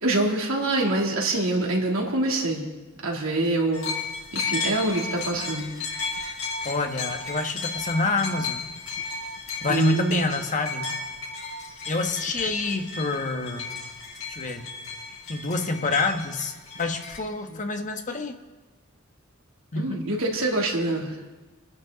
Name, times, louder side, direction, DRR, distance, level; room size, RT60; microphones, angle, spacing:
voice 1, 0.0-2.7 3.0-3.9 4.3-5.7 9.7-10.3 19.7-21.2, right 2 dB, 70° right, -2 dB, 3.0 m, -25 dB
sound 1, 3.7-17.2, left 4 dB, 65° left, 5.8 m, -34 dB
voice 2, 6.6-8.6 9.6-10.9 11.9-13.7 14.3-14.7 15.3-16.5 16.8-18.4 19.7-20.0, left 3 dB, 35° left, 5 dB, 1.3 m, -27 dB
26.5 x 11.0 x 4.0 m, 1.2 s
head